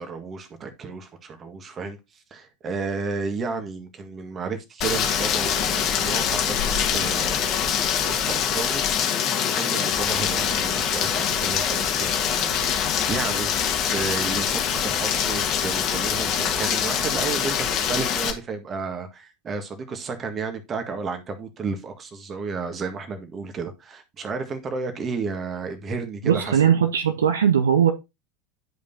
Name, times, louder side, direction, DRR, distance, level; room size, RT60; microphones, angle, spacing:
voice 1, 0.0-7.4 8.0-8.8 9.4-13.5 13.9-26.6, right 4 dB, 30° right, 1.7 m, -32 dB
Rain, 4.8-18.3, left 8 dB, 45° left, 1.7 m, -24 dB
voice 2, 26.2-27.9, right 8 dB, 75° right, 0.9 m, -19 dB
11.0 x 5.2 x 2.7 m
figure-of-eight pair, 80°, 0 cm